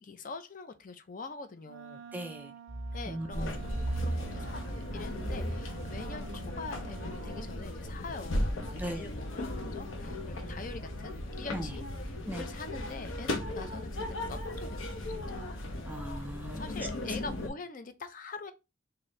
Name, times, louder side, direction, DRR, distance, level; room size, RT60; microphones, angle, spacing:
voice 1, 0.0-2.0 2.9-15.5 16.5-18.5, left 4 dB, 40° left, 0.5 m, -44 dB
Wind instrument woodwind instrument, 1.7-7.7, right 8 dB, 75° right, 0.4 m, -50 dB
voice 2, 2.1-2.5 3.1-3.6 8.8-9.1 11.5-11.7 12.3-12.4 15.9-16.6, right 1 dB, 10° right, 0.5 m, -38 dB
sound 1, 2.7-9.9 10.3-11.6 12.1-12.2 12.5-12.6 13.0-13.1 13.3-13.4 13.7-13.9 14.2-15.3, right 1 dB, 30° right, 1.0 m, -41 dB
sound 2, 3.3-17.5, left 1 dB, 90° left, 0.9 m, -37 dB
4.1 x 2.7 x 3.1 m
head